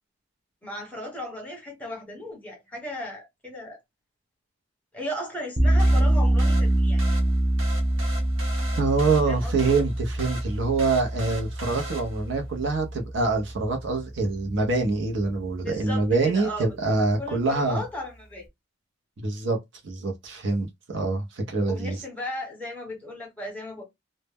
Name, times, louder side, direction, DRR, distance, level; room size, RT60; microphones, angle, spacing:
voice 1, 0.6-3.8 4.9-7.0 9.3-9.8 15.6-16.7 17.2-18.4 21.7-23.8, left 1 dB, 5° left, 0.9 m, -36 dB
sound 1, 5.6-14.4, right 1 dB, 15° right, 0.4 m, -25 dB
sound 2, 5.8-12.4, right 1 dB, 85° right, 0.9 m, -40 dB
voice 2, 8.8-17.8 19.2-19.6 19.8-22.0, right 3 dB, 65° right, 0.6 m, -25 dB
2.0 x 2.0 x 3.3 m
head